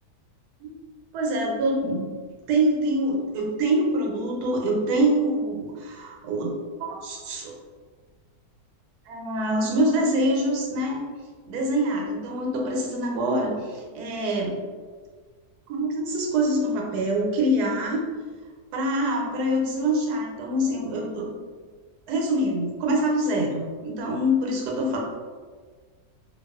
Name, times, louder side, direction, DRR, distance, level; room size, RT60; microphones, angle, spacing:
voice 1, 1.1-2.1 2.5-7.6 9.1-11.0 11.5-14.6 15.7-18.0 18.7-21.3 22.1-25.0, right 1 dB, 85° right, 0 dB, 1.1 m, -25 dB
2.5 x 2.3 x 2.3 m, 1.5 s
omnidirectional pair, 1.6 m